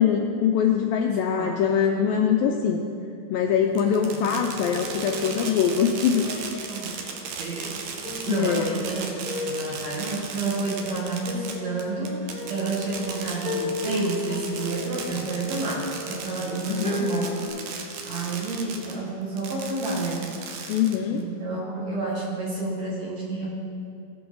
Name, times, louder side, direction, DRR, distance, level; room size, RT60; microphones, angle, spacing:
voice 1, 0.0-2.9 3.3-6.3 8.3-8.8 16.7-17.0 20.7-21.2, left 8 dB, 85° left, 3 dB, 2.0 m, -23 dB
voice 2, 1.1-1.6 3.8-4.0 4.3-4.4 6.7-7.9 8.3-9.1 9.4-17.4 17.8-20.3 21.1-23.5, right 3 dB, 60° right, -4 dB, 2.2 m, -30 dB
sound 1, 3.5-3.6 3.9-7.1 7.6-17.5, left 2 dB, 20° right, 1.9 m, -36 dB
Fireworks, 3.8-19.0 19.4-21.2, right 5 dB, 75° right, 2.1 m, -36 dB
18.0 x 6.0 x 3.9 m, 2.5 s
omnidirectional pair, 4.5 m